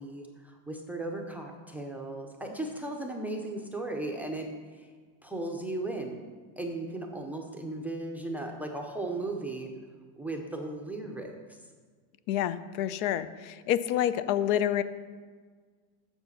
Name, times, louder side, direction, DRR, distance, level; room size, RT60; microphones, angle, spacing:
voice 1, 0.0-4.5 5.2-6.2 6.6-9.7 10.2-11.4, right 2 dB, 5° right, 2 dB, 0.5 m, -36 dB
voice 2, 12.3-14.8, left 11 dB, 65° left, 14 dB, 0.6 m, -28 dB
7.2 x 6.6 x 6.6 m, 1.5 s
supercardioid pair, 150°, 44 cm